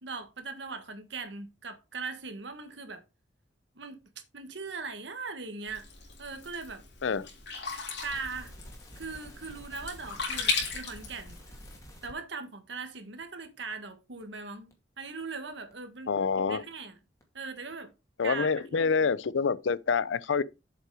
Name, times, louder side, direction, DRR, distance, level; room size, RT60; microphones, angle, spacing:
voice 1, 0.0-3.0 3.7-4.0 4.3-5.8 6.2-6.8 8.0-8.5 9.0-11.4 12.0-16.9 17.3-17.9 18.2-18.5 18.8-19.1, right 4 dB, 70° right, 1.6 m, -40 dB
Sink (filling or washing), 5.7-11.8, left 5 dB, 65° left, 3.4 m, -37 dB
sound 1, 8.0-12.2 12.7-12.8 13.2-13.3 13.7-13.8 14.2-14.3 14.7-14.8 15.2-15.3 15.7-15.8 16.2-16.3 16.7-16.8 17.2-17.3 17.7-17.8 18.2-18.3, equal, 15° left, 2.1 m, -49 dB
voice 2, 16.1-16.6 18.2-20.4, left 5 dB, 85° left, 0.5 m, -27 dB
7.6 x 5.6 x 4.8 m
head